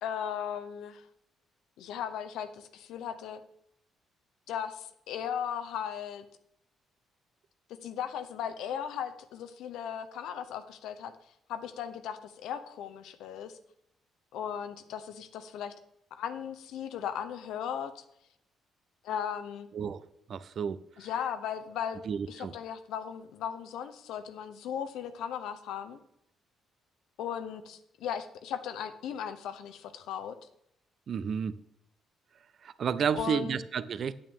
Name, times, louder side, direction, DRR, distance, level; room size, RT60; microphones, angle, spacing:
voice 1, 0.0-1.0 1.8-3.4 4.5-6.3 7.8-11.1 11.5-13.5 14.3-15.7 16.1-18.0 19.0-19.7 21.0-26.0 27.2-30.3 33.1-33.6, left 8 dB, 85° left, 9 dB, 0.7 m, -37 dB
voice 2, 20.3-20.8 22.1-22.5 31.1-31.5 32.6-34.1, right 7 dB, 50° right, 16 dB, 0.4 m, -31 dB
8.9 x 8.7 x 3.6 m, 0.75 s
cardioid pair, 125°, 0 cm